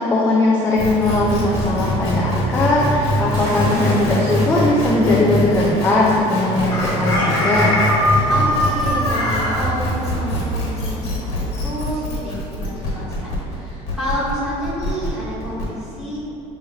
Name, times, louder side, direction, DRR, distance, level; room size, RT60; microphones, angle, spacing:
voice 1, 0.0-7.7, left 2 dB, 15° left, -5 dB, 0.3 m, -19 dB
sound 1, 0.7-15.6, left 1 dB, 60° left, 1.3 m, -23 dB
sound 2, 3.3-10.8, equal, 60° right, 1.3 m, -35 dB
Chicken rooster, 6.7-9.6, left 1 dB, 30° left, 1.2 m, -20 dB
voice 2, 8.3-11.0 11.3-16.2, equal, 5° right, -13 dB, 1.5 m, -29 dB
6.8 x 3.1 x 2.3 m, 3.0 s
cardioid pair, 175°, 13 cm